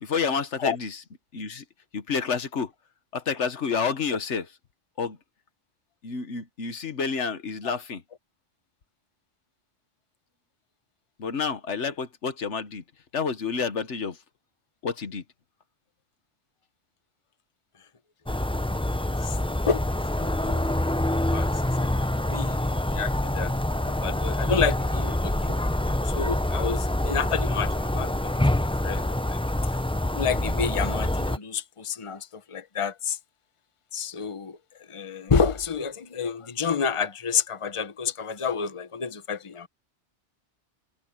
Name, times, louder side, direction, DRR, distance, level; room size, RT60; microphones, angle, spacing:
voice 1, 0.0-1.0 1.3-1.6 1.9-2.7 3.1-4.5 5.0-5.2 6.0-8.0 11.2-12.8 13.1-14.2 14.8-15.2, left 5 dB, 85° left, 1.6 m, -29 dB
sound 1, 18.3-31.4, left 1 dB, 5° left, 0.4 m, -26 dB
voice 2, 20.2-20.6 21.1-21.5 21.8-21.9 22.2-25.6 26.0-29.8 30.1-33.2 33.9-34.6 34.9-39.7, left 6 dB, 30° left, 1.0 m, -29 dB
omnidirectional pair, 1.2 m